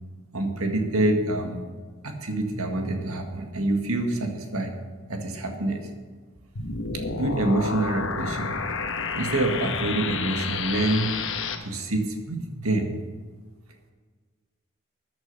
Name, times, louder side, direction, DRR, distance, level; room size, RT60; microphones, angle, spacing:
voice 1, 0.3-1.6 2.0-4.8 5.1-5.9 7.1-8.6 9.1-11.2 11.6-13.0, right 2 dB, 85° right, 4 dB, 1.8 m, -26 dB
sound 1, 6.6-11.6, left 5 dB, 65° left, 1.3 m, -30 dB
14.0 x 10.5 x 5.5 m, 1.5 s
head